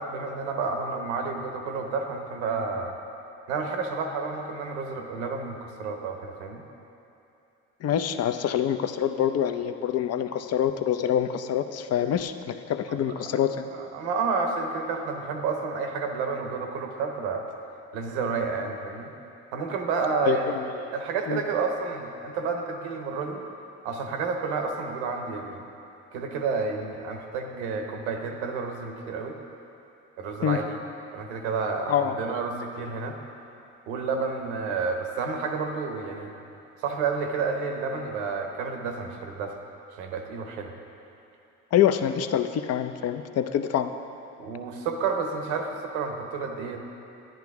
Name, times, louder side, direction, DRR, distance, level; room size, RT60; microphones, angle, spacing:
voice 1, 0.0-2.9 3.5-6.6 12.9-13.0 13.7-17.5 17.9-19.1 19.5-20.6 20.9-23.4 23.8-25.6 26.1-29.4 30.2-30.8 31.1-33.2 33.9-36.3 36.8-39.6 40.0-40.7 44.4-46.8, right 4 dB, 90° right, 3 dB, 1.0 m, -30 dB
voice 2, 7.8-13.7 20.3-20.6 21.3-21.4 30.4-30.6 31.9-32.2 41.7-43.9, left 9 dB, 50° left, 9 dB, 0.6 m, -25 dB
10.5 x 10.5 x 3.5 m, 2.8 s
supercardioid pair, 70°, 33 cm